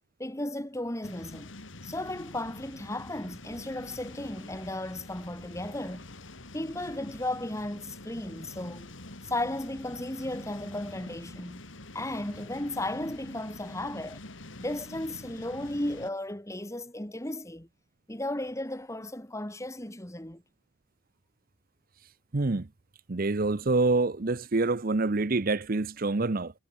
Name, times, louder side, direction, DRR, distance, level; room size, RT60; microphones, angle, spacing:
voice 1, 0.2-1.5 1.8-6.1 6.5-8.9 9.2-11.7 11.9-14.2 14.6-17.7 18.1-20.4, left 1 dB, 15° left, 2.1 m, -35 dB
sound 1, 1.0-16.1, left 2 dB, 70° left, 2.9 m, -46 dB
voice 2, 22.3-22.7 23.1-26.5, right 3 dB, 45° right, 0.8 m, -26 dB
head